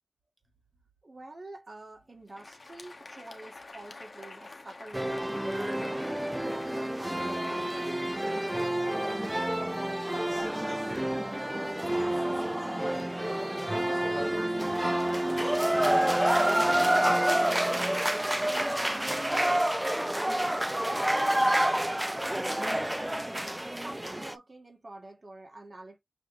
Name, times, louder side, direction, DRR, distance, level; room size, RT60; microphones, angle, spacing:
voice 1, 1.0-5.5 5.9-11.2 11.5-13.9 14.2-23.2 23.7-26.0, right 2 dB, 55° right, 1.6 m, -49 dB
Crowd, 2.1-10.6, left 3 dB, 60° left, 0.9 m, -49 dB
sound 1, 4.9-24.4, right 1 dB, 15° right, 0.4 m, -28 dB
6.1 x 3.0 x 2.5 m
wide cardioid pair, 50°, 0 cm